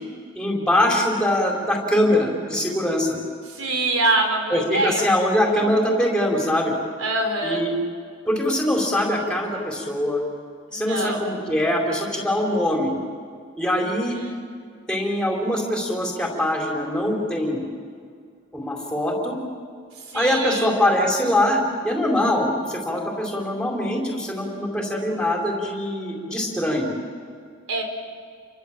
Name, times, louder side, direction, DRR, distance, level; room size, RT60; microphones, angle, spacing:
voice 1, 0.3-3.2 4.5-6.7 7.4-7.7 8.2-10.2 10.7-12.9 13.6-14.2 14.9-17.6 18.5-19.4 20.1-26.9, left 1 dB, 5° left, 0 dB, 4.4 m, -23 dB
voice 2, 3.5-5.1 7.0-7.6 10.7-11.2 13.7-14.4 19.9-20.8 27.7-27.8, right 2 dB, 90° right, 4 dB, 4.8 m, -25 dB
29.5 x 24.0 x 7.6 m, 2.1 s
head